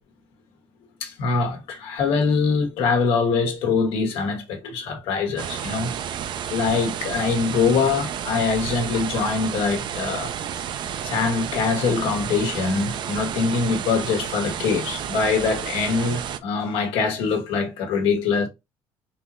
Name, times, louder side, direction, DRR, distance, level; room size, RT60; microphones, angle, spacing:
voice 1, 1.0-5.9 6.5-10.3 11.0-18.5, left 5 dB, 85° left, 1.2 m, -23 dB
sound 1, 5.4-16.4, right 9 dB, 55° right, 0.5 m, -31 dB
3.7 x 3.0 x 2.5 m
cardioid pair, 115°, 9 cm